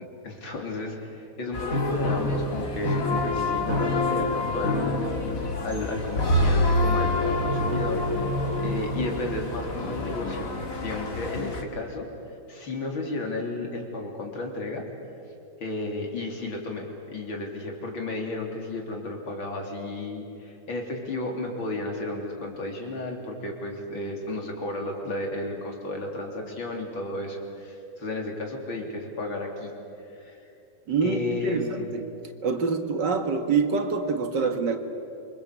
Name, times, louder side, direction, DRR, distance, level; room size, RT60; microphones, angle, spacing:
voice 1, 0.2-8.0 8.6-10.5 10.8-12.1 12.5-14.8 15.6-29.7 30.0-30.4 31.0-31.9, left 2 dB, 75° left, 1 dB, 4.3 m, -33 dB
sound 1, 1.5-11.6, left 1 dB, 45° left, 2.7 m, -26 dB
voice 2, 30.9-32.1 32.4-34.8, right 5 dB, 60° right, 7 dB, 2.3 m, -26 dB
26.5 x 24.5 x 8.3 m, 2.8 s
omnidirectional pair, 2.2 m